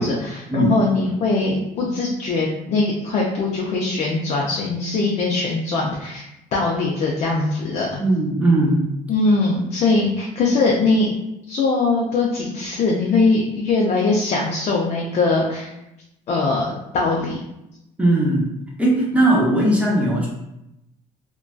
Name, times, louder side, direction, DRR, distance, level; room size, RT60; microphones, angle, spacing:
voice 1, 0.0-6.2 6.5-8.0 9.1-11.1 11.5-15.7 16.3-17.4, left 3 dB, 45° left, -2 dB, 0.4 m, -21 dB
voice 2, 8.0-8.8 18.0-18.4 18.8-20.3, right 1 dB, 10° right, -3 dB, 0.6 m, -18 dB
2.5 x 2.2 x 2.2 m, 0.88 s
cardioid pair, 120°, 15 cm